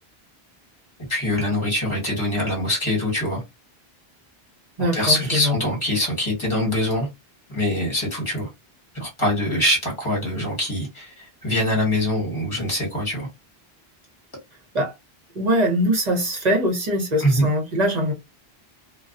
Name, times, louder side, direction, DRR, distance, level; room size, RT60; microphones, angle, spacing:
voice 1, 1.1-3.4 4.8-7.1 7.5-8.5 8.9-13.3 17.2-17.4, left 1 dB, 30° left, 1.4 m, -23 dB
voice 2, 4.8-5.5 14.7-14.9 15.3-18.1, equal, 45° right, 0.9 m, -22 dB
2.3 x 2.2 x 2.5 m
omnidirectional pair, 1.1 m